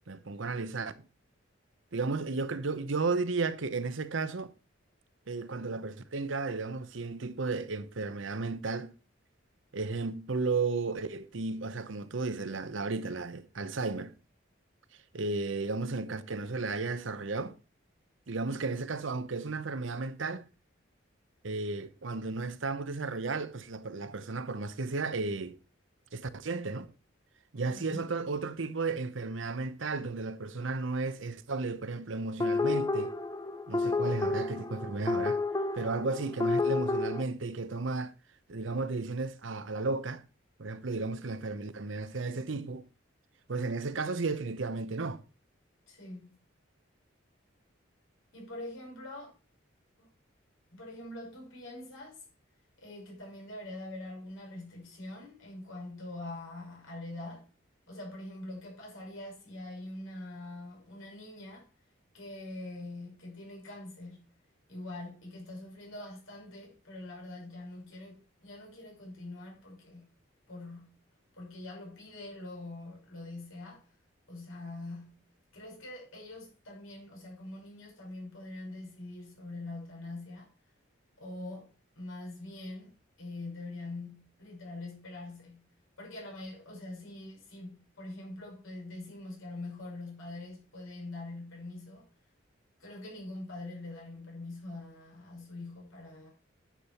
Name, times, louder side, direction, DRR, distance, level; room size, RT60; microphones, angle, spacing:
voice 1, 0.1-1.1 1.9-4.5 5.3-8.9 9.7-14.1 15.1-17.6 18.3-20.4 21.4-25.6 26.1-26.9 27.5-33.1 33.7-35.4 35.7-38.1 38.5-40.2 40.6-42.9 43.5-45.2, right 3 dB, 75° right, 0.8 m, -34 dB
voice 2, 27.7-28.0 45.9-46.4 48.3-49.3 50.0-50.1 50.7-52.2 52.8-57.5 57.9-61.7 62.1-64.3 64.7-70.1 70.5-71.0 71.3-73.9 74.3-75.3 75.5-80.5 81.2-81.7 82.0-85.7 86.0-92.1 92.8-96.3, left 2 dB, 90° left, 5.6 m, -44 dB
sound 1, 32.4-37.2, left 3 dB, 20° left, 0.4 m, -30 dB
10.0 x 7.5 x 4.3 m
head